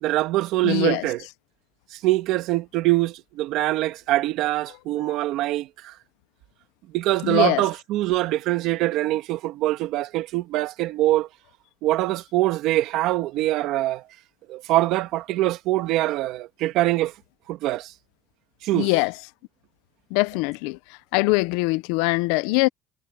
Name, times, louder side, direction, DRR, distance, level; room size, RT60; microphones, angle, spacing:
voice 1, 0.0-1.2 1.9-5.9 6.9-11.3 11.8-14.0 14.5-17.1 17.5-17.9 18.6-18.9, right 16 dB, 60° right, 2.0 m, -23 dB
voice 2, 0.6-1.0 5.0-5.2 7.2-7.7 18.7-19.1 20.1-20.8 21.1-22.7, left 23 dB, 85° left, 0.6 m, -22 dB
cardioid pair, 150°, 0 cm